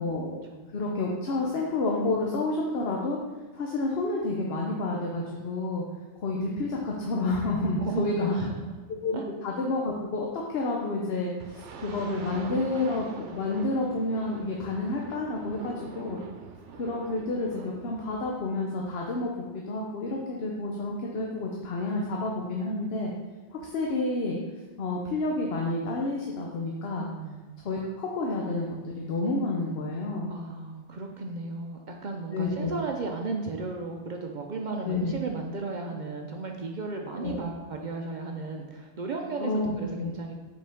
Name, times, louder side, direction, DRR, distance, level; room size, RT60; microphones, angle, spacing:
voice 1, 0.0-0.4 0.7-3.2 3.5-5.8 6.2-8.4 9.0-13.1 13.3-16.2 16.8-23.1 23.5-24.4 24.8-27.1 27.6-30.3 32.3-32.8 34.8-35.1 37.2-37.4 39.4-40.1, left 2 dB, 65° left, -1 dB, 0.9 m, -30 dB
voice 2, 7.8-8.7 9.1-9.2 27.2-27.6 30.3-40.3, right 3 dB, 50° right, 2 dB, 0.6 m, -34 dB
sound 1, 11.4-18.3, right 6 dB, 90° right, 0.9 m, -44 dB
6.8 x 4.6 x 3.5 m, 1.3 s
omnidirectional pair, 1.2 m